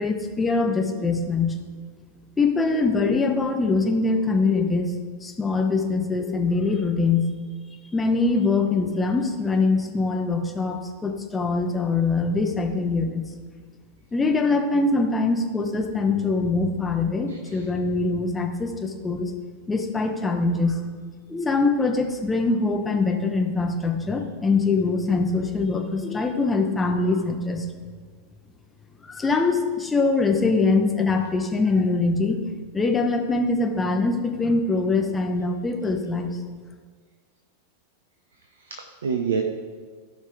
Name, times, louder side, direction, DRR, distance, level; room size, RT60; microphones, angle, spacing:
voice 1, 0.0-1.6 2.4-4.9 5.2-7.3 7.9-13.3 14.1-19.3 19.7-20.8 21.3-27.7 29.1-36.4, left 3 dB, 15° left, 3 dB, 1.0 m, -23 dB
voice 2, 17.3-17.7 38.6-39.4, right 6 dB, 65° right, 4 dB, 0.7 m, -28 dB
15.0 x 5.3 x 3.8 m, 1.5 s
figure-of-eight pair, 90°, 0 cm